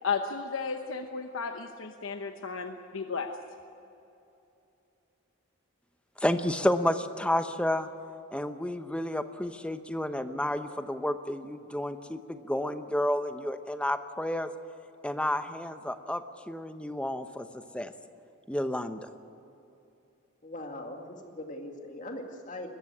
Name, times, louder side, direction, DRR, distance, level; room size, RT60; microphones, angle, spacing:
voice 1, 0.0-3.3, left 5 dB, 75° left, 5 dB, 1.0 m, -34 dB
voice 2, 6.2-7.9 8.3-14.5 15.0-17.9 18.5-19.1, left 1 dB, 5° left, 9 dB, 0.8 m, -31 dB
voice 3, 20.4-22.7, left 1 dB, 35° left, 3 dB, 2.2 m, -40 dB
20.5 x 15.0 x 9.7 m, 2.8 s
head